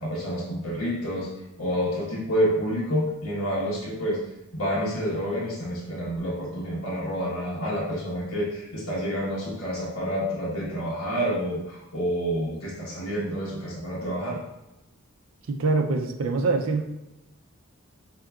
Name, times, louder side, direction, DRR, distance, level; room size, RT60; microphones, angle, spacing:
voice 1, 0.0-1.3 1.6-4.2 4.5-14.4, equal, 80° left, -5 dB, 1.2 m, -28 dB
voice 2, 15.5-16.8, right 3 dB, 70° right, 5 dB, 0.4 m, -24 dB
3.5 x 2.8 x 2.3 m, 0.93 s
head